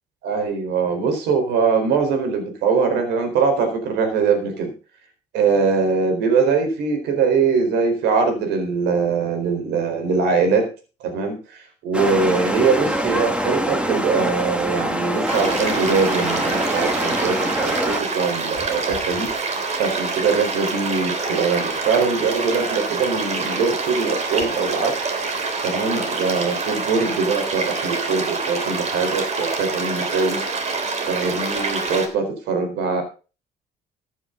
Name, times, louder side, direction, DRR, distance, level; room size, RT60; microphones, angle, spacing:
voice 1, 0.2-4.7 5.3-10.7 11.0-19.3 19.8-24.9 25.6-30.4 31.1-33.0, right 5 dB, 85° right, 6 dB, 4.2 m, -22 dB
sound 1, 11.9-18.0, equal, 5° right, 1.9 m, -24 dB
sound 2, 15.3-32.1, right 4 dB, 40° right, 3.3 m, -26 dB
14.5 x 9.4 x 3.8 m, 0.33 s
cardioid pair, 110°, 17 cm